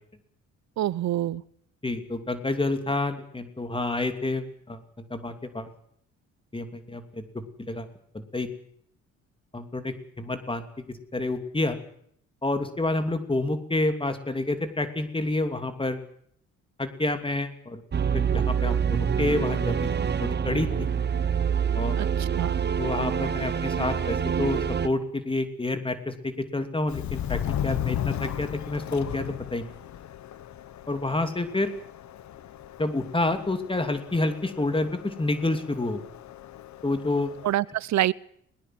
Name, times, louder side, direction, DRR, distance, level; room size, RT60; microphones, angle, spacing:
voice 1, 0.8-1.4 22.0-22.6 37.4-38.1, right 13 dB, 65° right, 22 dB, 0.8 m, -26 dB
voice 2, 1.8-5.7 6.5-7.9 8.1-8.5 9.5-11.8 12.4-16.0 16.8-17.8 18.1-20.9 21.7-22.0 22.8-29.7 30.9-31.7 32.8-36.0 36.8-37.3, left 2 dB, 15° left, 8 dB, 2.9 m, -29 dB
sound 1, 17.9-24.9, right 7 dB, 35° right, 1.2 m, -26 dB
Subway metro underground, 26.9-37.5, left 10 dB, 70° left, 1.5 m, -36 dB
21.0 x 20.0 x 7.8 m, 0.67 s
cardioid pair, 90°, 30 cm